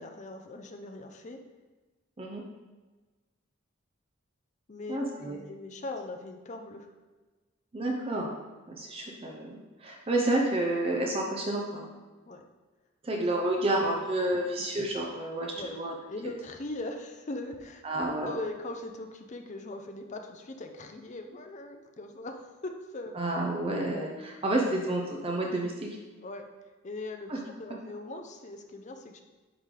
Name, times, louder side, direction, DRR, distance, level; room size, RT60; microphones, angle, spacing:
voice 1, 0.0-1.4 4.7-6.9 12.3-12.4 14.6-14.7 15.6-15.8 16.1-17.8 18.2-23.1 26.2-26.5 26.8-29.2, left 2 dB, 35° left, 5 dB, 0.6 m, -40 dB
voice 2, 4.9-5.4 7.7-8.3 8.7-11.8 13.0-15.9 17.8-18.4 23.2-25.9 27.3-27.4 27.7-27.8, right 1 dB, 25° right, -1 dB, 0.6 m, -30 dB
9.7 x 3.3 x 3.8 m, 1.3 s
head